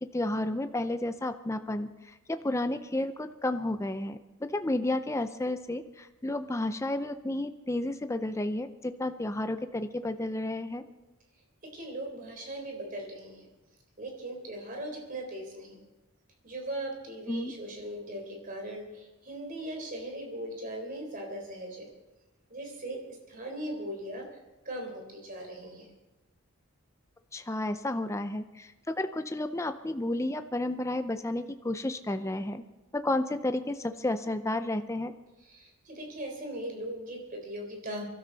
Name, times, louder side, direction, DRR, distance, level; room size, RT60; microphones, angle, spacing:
voice 1, 0.1-4.2 4.5-10.8 17.3-17.5 27.3-32.6 32.9-35.1, left 1 dB, 15° left, 9 dB, 0.5 m, -32 dB
voice 2, 11.7-13.5 14.0-15.8 16.4-21.9 22.5-23.0 23.3-24.3 24.7-25.9 35.4-38.1, right 1 dB, 40° right, 1 dB, 3.8 m, -39 dB
24.0 x 12.5 x 4.0 m, 1.1 s
head